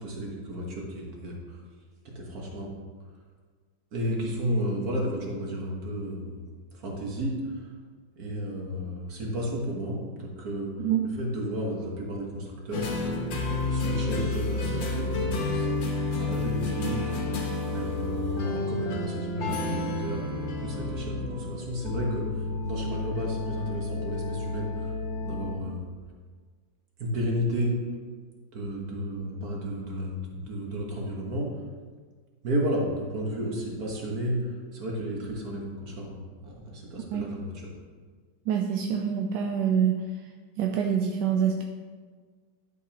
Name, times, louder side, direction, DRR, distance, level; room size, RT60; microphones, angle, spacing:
voice 1, 0.0-1.6 2.1-2.7 3.9-6.4 6.7-7.7 8.2-10.7 11.0-12.9 13.7-15.8 16.2-24.9 25.2-25.9 27.0-27.8 28.5-31.5 32.4-37.7, equal, 55° right, -2 dB, 1.9 m, -33 dB
sound 1, 12.7-25.6, left 2 dB, 80° left, 1.7 m, -30 dB
voice 2, 38.5-40.0 40.6-41.6, right 8 dB, 75° right, 3 dB, 1.1 m, -25 dB
11.0 x 6.9 x 3.0 m, 1.5 s
omnidirectional pair, 2.1 m